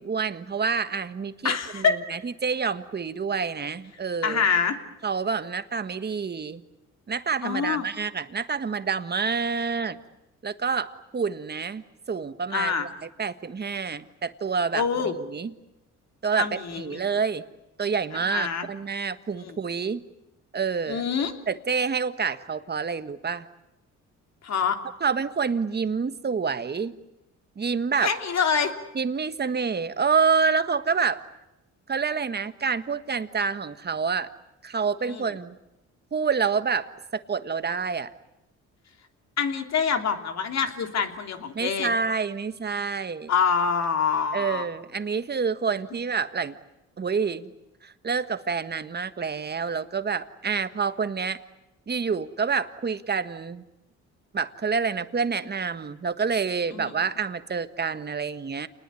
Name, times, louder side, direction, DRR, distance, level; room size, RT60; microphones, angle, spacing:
voice 1, 0.0-4.4 5.0-6.6 7.1-10.0 10.4-11.8 12.1-12.9 13.2-14.8 15.3-15.5 16.2-17.4 17.8-20.0 20.5-21.0 21.5-23.5 25.0-26.9 27.6-28.1 28.9-31.2 31.9-34.3 34.6-35.6 36.1-38.1 41.5-43.3 44.3-46.5 47.0-47.5 47.8-51.4 51.9-53.6 54.3-58.7, right 5 dB, 35° right, 11 dB, 1.6 m, -27 dB
voice 2, 1.4-2.0 4.2-4.8 7.4-7.8 12.5-12.9 14.7-15.1 16.3-17.0 18.1-18.7 19.4-19.6 20.9-21.3 24.4-24.8 28.0-28.7 35.1-35.2 39.4-41.9 43.3-44.7 56.7-56.9, left 6 dB, 60° left, 6 dB, 3.2 m, -26 dB
29.0 x 20.0 x 10.0 m, 0.94 s
cardioid pair, 90°, 30 cm